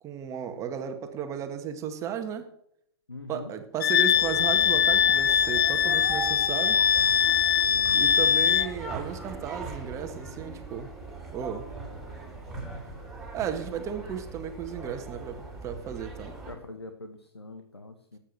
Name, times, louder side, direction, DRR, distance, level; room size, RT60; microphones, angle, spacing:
voice 1, 0.0-2.5 3.3-6.8 7.9-10.9 11.3-11.7 13.3-16.4, right 8 dB, 25° right, 7 dB, 1.8 m, -34 dB
voice 2, 3.1-3.5 7.7-8.4 16.5-18.2, left 3 dB, 80° left, 7 dB, 1.5 m, -43 dB
Wind instrument woodwind instrument, 3.8-8.7, left 7 dB, 55° left, 0.6 m, -22 dB
sound 1, 4.1-16.5, right 3 dB, ahead, 5.7 m, -40 dB
18.0 x 8.9 x 6.2 m, 0.75 s
figure-of-eight pair, 110°, 13 cm